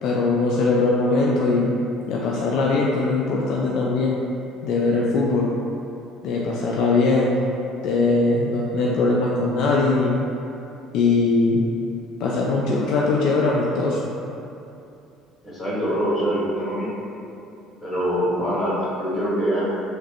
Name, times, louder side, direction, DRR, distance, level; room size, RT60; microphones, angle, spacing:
voice 1, 0.0-1.7 2.1-4.2 4.6-5.5 6.2-7.4 7.8-10.2 10.9-11.6 12.2-14.1, left 3 dB, 65° left, -3 dB, 0.3 m, -21 dB
voice 2, 15.4-16.9 17.8-19.6, equal, 25° left, -8 dB, 1.5 m, -24 dB
3.9 x 2.1 x 2.9 m, 2.7 s
hypercardioid pair, 65°, 0 cm